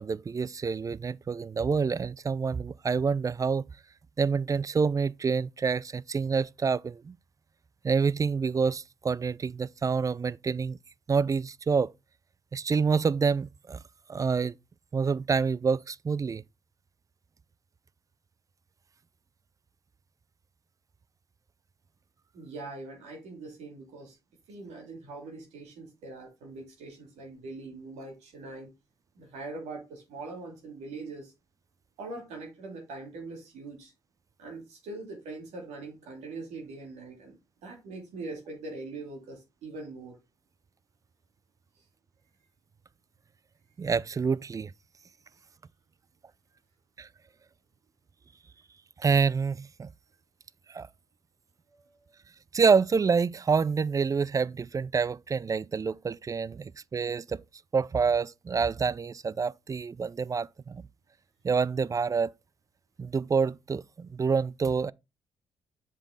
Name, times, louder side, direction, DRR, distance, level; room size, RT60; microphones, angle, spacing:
voice 1, 0.0-3.6 4.2-7.2 7.8-10.8 11.1-11.9 12.5-13.8 14.1-14.6 14.9-16.4 43.8-44.7 47.0-47.1 49.0-49.9 50.7-50.9 52.5-57.4 57.7-60.8 61.4-62.3 63.0-64.9, right 5 dB, 30° right, 0.4 m, -27 dB
voice 2, 22.3-24.1 24.5-28.7 29.1-31.3 32.0-33.9 34.4-37.4 37.6-40.2, right 3 dB, 75° right, 2.8 m, -42 dB
7.2 x 5.2 x 3.8 m
hypercardioid pair, 50°, 12 cm